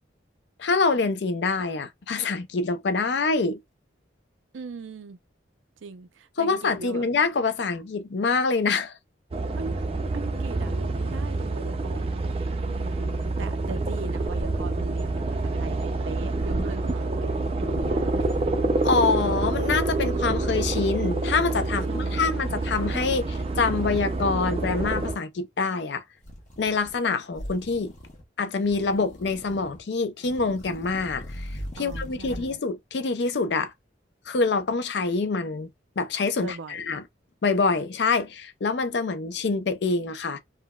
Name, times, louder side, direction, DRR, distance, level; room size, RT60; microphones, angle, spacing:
voice 1, 0.6-3.6 6.4-9.0 18.8-26.0 26.6-27.9 28.4-33.7 34.3-35.7 36.0-37.0 37.4-40.4, left 4 dB, 65° left, 0.5 m, -26 dB
voice 2, 4.5-5.2 5.8-7.0 9.6-9.8 10.1-17.3 17.6-18.4 21.9-22.5 31.8-32.6 36.4-36.9, right 4 dB, 90° right, 0.4 m, -40 dB
sound 1, 9.3-25.2, right 2 dB, 30° right, 0.4 m, -27 dB
sound 2, 19.3-20.5 20.9-21.3 21.8-22.3 22.7-24.3 24.6-25.1 26.2-27.0 27.3-28.2 28.6-29.8 30.2-32.5, equal, 40° left, 0.8 m, -42 dB
3.9 x 2.1 x 2.2 m
head